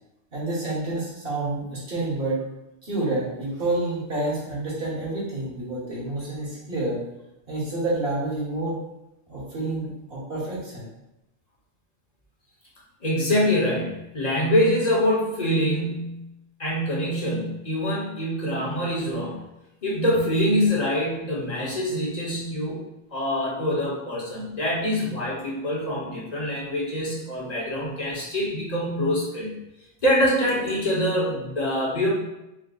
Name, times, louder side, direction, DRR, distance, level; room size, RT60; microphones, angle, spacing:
voice 1, 0.3-2.4 2.8-7.0 7.5-8.8 9.3-10.9, right 2 dB, 60° right, -6 dB, 1.6 m, -28 dB
voice 2, 13.0-16.3 16.6-19.4 19.8-22.8 23.1-29.5 30.0-32.1, equal, 40° left, -4 dB, 1.1 m, -25 dB
4.7 x 2.1 x 3.9 m, 0.92 s
omnidirectional pair, 1.1 m